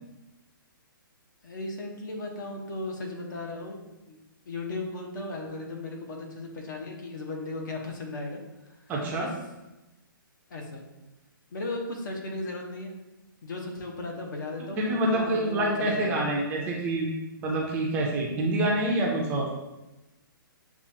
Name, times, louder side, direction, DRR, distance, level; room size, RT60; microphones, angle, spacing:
voice 1, 1.4-3.8 4.1-4.2 4.5-9.3 10.5-10.8 11.5-13.0 13.4-16.2, left 2 dB, 60° left, 1 dB, 1.0 m, -36 dB
voice 2, 8.9-9.3 14.6-17.1 17.4-19.5, right 1 dB, 15° right, -2 dB, 0.4 m, -27 dB
7.0 x 2.4 x 2.7 m, 1.0 s
hypercardioid pair, 155°, 12 cm